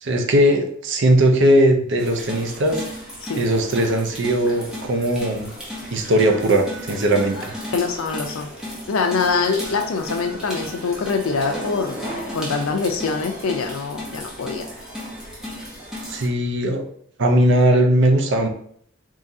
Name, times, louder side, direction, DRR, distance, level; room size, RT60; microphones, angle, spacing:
voice 1, 0.0-2.8 3.4-5.5 5.9-7.5 16.1-16.8 17.2-18.5, right 1 dB, 60° right, 4 dB, 0.6 m, -18 dB
sound 1, 2.0-16.3, equal, 5° right, 0.9 m, -34 dB
voice 2, 7.7-8.5 8.9-12.0 12.3-14.7, left 4 dB, 80° left, 5 dB, 0.5 m, -24 dB
3.7 x 3.1 x 2.7 m, 0.63 s
head